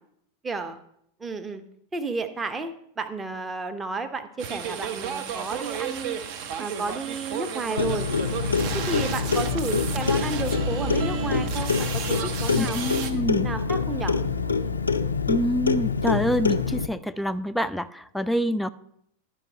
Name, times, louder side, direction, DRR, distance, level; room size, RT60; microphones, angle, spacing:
voice 1, 0.4-0.8 1.2-1.6 1.9-2.7 3.0-6.2 6.6-8.1 8.7-12.8 13.4-14.1, right 3 dB, 15° right, 7 dB, 0.8 m, -32 dB
sound 1, 4.4-13.1, right 8 dB, 45° right, 0.8 m, -33 dB
Clock, 7.8-16.9, left 5 dB, 75° left, 0.4 m, -26 dB
voice 2, 12.6-13.5 15.3-18.7, left 1 dB, ahead, 11 dB, 0.3 m, -26 dB
11.5 x 5.3 x 4.6 m, 0.72 s
figure-of-eight pair, 90°, 0 cm